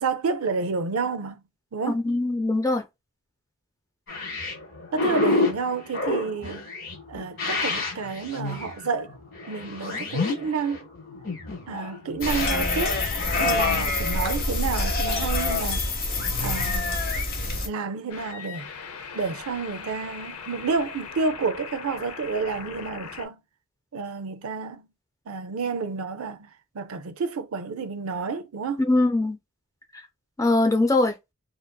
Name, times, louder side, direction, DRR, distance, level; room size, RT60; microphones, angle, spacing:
voice 1, 0.0-1.4 1.7-2.0 4.9-6.6 7.1-9.2 9.5-10.8 11.7-13.0 13.3-16.0 16.4-17.0 17.6-18.7 19.1-23.4 23.9-24.9 25.3-26.5 26.7-28.8, right 4 dB, 70° right, 0.5 m, -30 dB
voice 2, 1.9-2.8 28.8-29.4 30.4-31.2, left 2 dB, 15° left, 0.5 m, -22 dB
sound 1, 4.1-12.5, left 3 dB, 60° left, 1.5 m, -29 dB
sound 2, 12.2-17.7, left 2 dB, 45° left, 0.9 m, -25 dB
sound 3, 18.1-23.3, left 6 dB, 85° left, 0.6 m, -40 dB
3.1 x 2.5 x 2.2 m
head